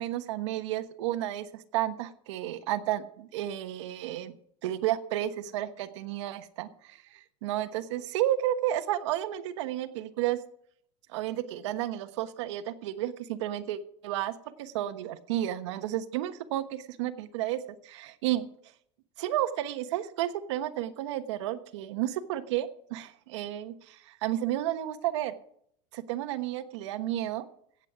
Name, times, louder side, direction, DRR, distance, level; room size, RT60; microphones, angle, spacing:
voice 1, 0.0-4.3 4.6-10.4 11.1-18.5 19.2-25.3 25.9-27.4, right 13 dB, 75° right, 10 dB, 1.1 m, -32 dB
16.0 x 8.2 x 4.9 m, 0.67 s
supercardioid pair, 170°, 15 cm